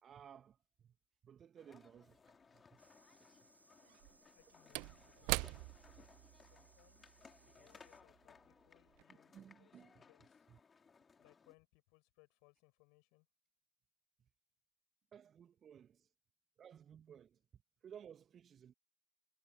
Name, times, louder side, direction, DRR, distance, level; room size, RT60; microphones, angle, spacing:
voice 1, 0.0-0.9 1.2-2.2 2.5-2.9 4.2-4.3 9.1-10.0 10.5-10.6 15.1-16.1 16.6-17.4 17.8-18.7, right 8 dB, 25° right, 1.7 m, -58 dB
sound 1, 1.6-11.5, left 5 dB, 15° left, 3.9 m, -64 dB
Slam / Wood, 2.3-2.4 3.8-8.5 8.9-9.0, right 31 dB, 45° right, 0.4 m, -44 dB
sound 2, 2.8-8.0, right 2 dB, 85° right, 3.3 m, -70 dB
voice 2, 4.3-10.5 11.2-13.3, left 35 dB, 45° left, 7.6 m, -71 dB
figure-of-eight pair, 90°, 0 cm